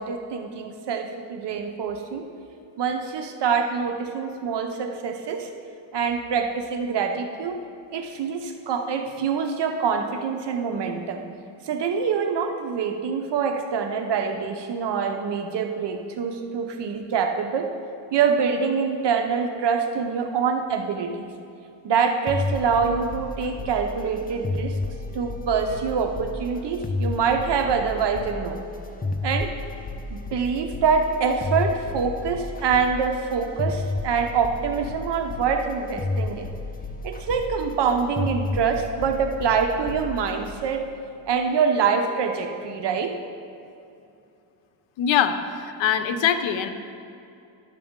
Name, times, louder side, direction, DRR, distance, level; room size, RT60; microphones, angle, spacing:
voice 1, 0.0-2.3 2.8-5.5 5.9-7.6 7.9-11.2 11.6-17.7 18.1-21.3 21.8-24.8 25.1-28.6 29.2-29.5 30.1-36.5 37.0-40.9 41.3-43.1, right 6 dB, 60° right, 5 dB, 0.8 m, -25 dB
sound 1, 22.3-40.6, left 2 dB, 20° left, 0.6 m, -32 dB
voice 2, 45.0-46.7, left 8 dB, 70° left, 8 dB, 0.8 m, -23 dB
11.5 x 7.4 x 3.7 m, 2.6 s
cardioid pair, 100°, 47 cm